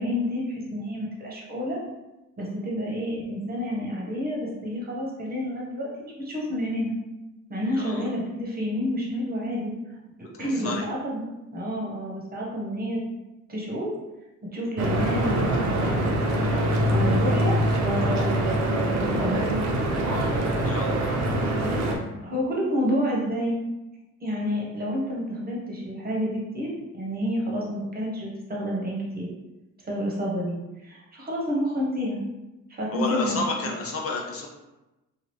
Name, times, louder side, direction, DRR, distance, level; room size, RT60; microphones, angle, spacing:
voice 1, 0.0-1.8 2.4-6.9 7.5-9.7 10.4-11.2 11.5-13.0 13.5-13.9 14.5-16.0 16.3-18.4 18.8-19.4 22.2-23.6 24.2-29.3 29.8-30.6 30.8-32.2 32.7-33.4 33.6-33.7, equal, 30° right, -4 dB, 1.1 m, -29 dB
voice 2, 7.7-8.1 10.4-10.9 20.6-21.2 32.9-34.5, left 3 dB, 50° left, 0 dB, 0.6 m, -31 dB
Stream / Boat Water vehicle, 14.8-22.0, right 1 dB, 65° right, 0.7 m, -24 dB
2.9 x 2.3 x 3.0 m, 1.0 s
cardioid pair, 90°, 30 cm